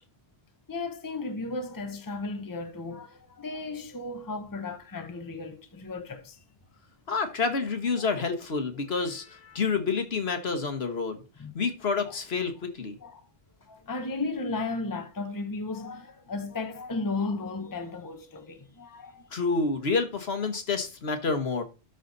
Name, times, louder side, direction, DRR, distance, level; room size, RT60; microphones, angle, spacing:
voice 1, 0.7-6.4 8.8-8.9 11.4-11.5 12.1-12.2 13.0-13.2 13.7-19.3, left 3 dB, 20° left, 0.9 m, -35 dB
voice 2, 7.1-11.2 11.5-12.9 19.3-21.6, left 4 dB, 70° left, 1.6 m, -28 dB
12.5 x 5.1 x 4.0 m
omnidirectional pair, 1.1 m